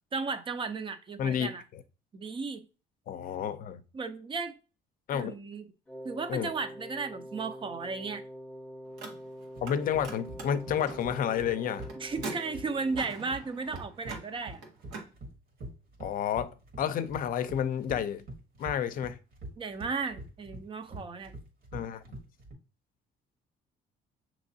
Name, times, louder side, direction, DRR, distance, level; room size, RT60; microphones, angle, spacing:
voice 1, 0.1-1.6 2.1-2.7 3.9-4.5 5.1-5.7 6.0-8.2 12.0-14.6 19.6-21.4, right 4 dB, 30° right, 0.6 m, -35 dB
voice 2, 1.2-1.5 3.1-3.8 5.1-5.3 6.3-6.5 9.6-11.9 16.0-18.2 18.6-19.2 21.7-22.0, left 9 dB, 55° left, 0.5 m, -30 dB
Wind instrument woodwind instrument, 5.9-13.2, equal, 5° left, 0.8 m, -45 dB
Car, 8.9-9.8 10.0-15.1, right 3 dB, 80° right, 1.4 m, -44 dB
sound 1, 9.6-22.5, right 1 dB, 60° right, 1.6 m, -44 dB
6.4 x 3.0 x 2.7 m
cardioid pair, 110°, 17 cm